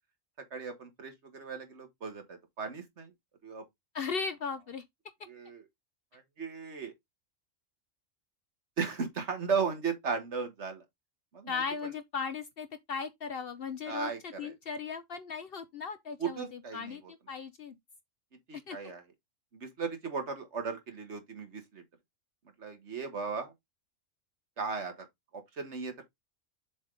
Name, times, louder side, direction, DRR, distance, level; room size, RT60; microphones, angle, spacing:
voice 1, 0.4-3.1 3.4-3.7 5.3-5.7 6.1-6.9 8.8-10.9 11.3-11.9 13.9-14.5 16.2-17.1 18.5-19.0 19.5-21.8 22.6-23.5 24.6-25.1 25.3-26.0, right 5 dB, 60° right, 1.7 m, -36 dB
voice 2, 3.9-4.8 11.5-16.5 16.7-17.8 18.5-18.8, left 5 dB, 55° left, 0.7 m, -37 dB
7.2 x 3.5 x 3.7 m
omnidirectional pair, 1.3 m